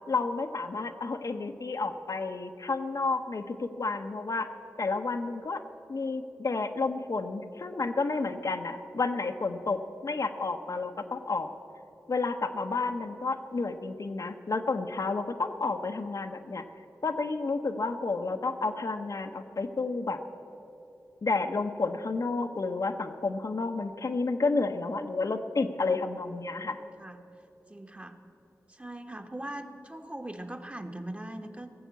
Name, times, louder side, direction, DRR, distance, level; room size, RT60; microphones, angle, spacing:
voice 1, 0.1-4.5 4.8-5.6 5.9-11.5 12.1-16.6 17.0-20.2 21.2-26.8, left 3 dB, 65° left, 6 dB, 0.8 m, -31 dB
voice 2, 26.7-27.2 27.7-28.2 28.7-31.7, right 1 dB, 20° right, 5 dB, 1.1 m, -41 dB
16.5 x 7.2 x 8.1 m, 2.9 s
cardioid pair, 40°, 6 cm